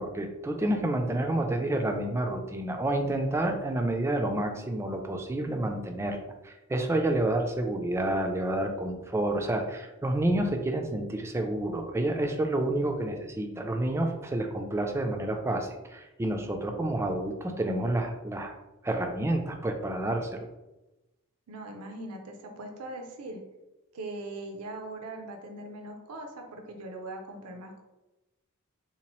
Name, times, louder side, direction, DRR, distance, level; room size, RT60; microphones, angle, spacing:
voice 1, 0.0-6.2 6.4-18.6 18.8-20.5, right 1 dB, 10° right, 4 dB, 0.3 m, -29 dB
voice 2, 21.5-23.4 23.9-27.8, right 2 dB, 85° right, 3 dB, 0.6 m, -40 dB
3.7 x 2.8 x 3.0 m, 1.0 s
head